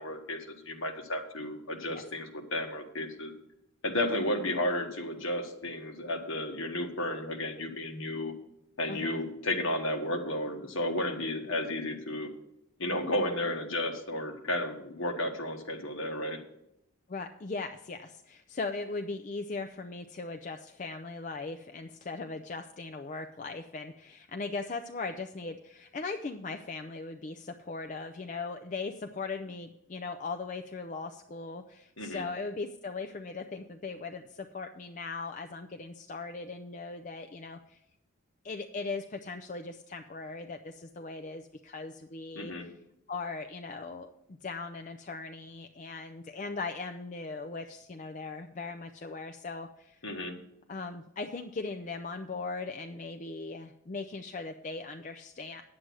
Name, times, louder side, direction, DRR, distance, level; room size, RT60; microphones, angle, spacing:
voice 1, 0.0-3.3 3.8-8.3 8.8-12.3 12.8-16.4 32.0-32.3 42.3-42.7 50.0-50.3, left 1 dB, 60° left, 3 dB, 1.5 m, -33 dB
voice 2, 8.9-9.2 17.1-37.8 38.4-42.7 43.1-50.0 50.7-55.6, left 3 dB, 35° left, 6 dB, 0.4 m, -39 dB
9.6 x 7.8 x 6.2 m, 0.83 s
head